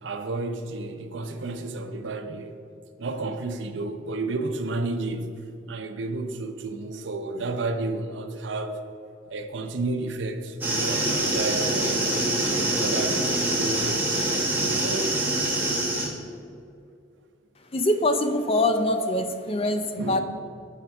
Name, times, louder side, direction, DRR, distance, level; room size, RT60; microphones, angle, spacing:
voice 1, 0.0-2.5 3.0-5.3 5.7-8.8 9.3-12.1 12.5-15.6 20.0-20.2, right 2 dB, 70° right, 0.6 m, -32 dB
sound 1, 10.6-16.1, right 1 dB, 10° right, 1.0 m, -25 dB
voice 2, 17.7-20.2, left 1 dB, 30° left, 0.4 m, -24 dB
8.3 x 4.4 x 5.9 m
head